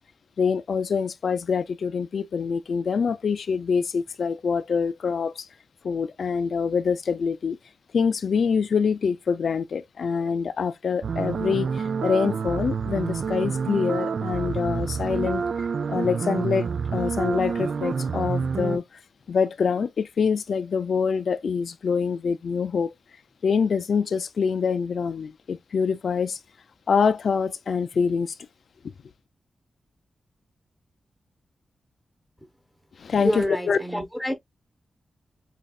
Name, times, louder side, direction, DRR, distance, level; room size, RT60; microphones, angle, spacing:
voice 1, 0.4-5.5 5.8-7.6 7.9-15.4 15.9-18.8 19.3-22.9 23.4-26.4 26.9-28.4 33.0-33.8, left 6 dB, 70° left, 0.4 m, -25 dB
sound 1, 11.0-18.8, right 6 dB, 65° right, 0.3 m, -28 dB
voice 2, 33.2-34.3, equal, ahead, 1.0 m, -27 dB
5.3 x 2.4 x 2.4 m
wide cardioid pair, 100°, 0 cm